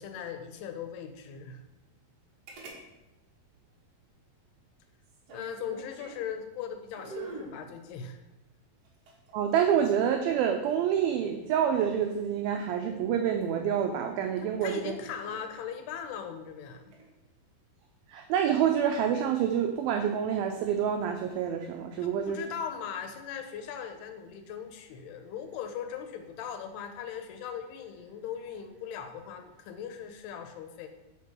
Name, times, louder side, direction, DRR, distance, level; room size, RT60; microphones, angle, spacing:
voice 1, 0.0-1.6 5.3-8.2 14.4-16.8 22.0-30.9, left 8 dB, 85° left, 7 dB, 2.6 m, -39 dB
sound 1, 2.5-2.8 3.1-3.2 5.0-6.3 6.9-7.6 8.8-10.1 11.8-12.2 14.1-14.4 14.9-15.5 16.8-17.1, right 3 dB, 65° right, 1.6 m, -45 dB
voice 2, 9.3-14.9 18.1-22.4, right 8 dB, 90° right, 4 dB, 2.1 m, -27 dB
5.9 x 4.6 x 5.9 m, 1.0 s
omnidirectional pair, 4.7 m